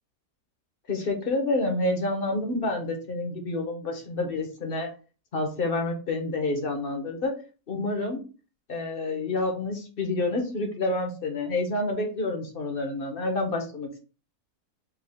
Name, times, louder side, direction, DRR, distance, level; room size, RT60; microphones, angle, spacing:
voice 1, 0.9-4.9 5.3-7.3 7.7-8.2 8.7-14.0, left 2 dB, 45° left, 4 dB, 0.9 m, -28 dB
4.8 x 2.3 x 3.5 m, 0.35 s
omnidirectional pair, 1.7 m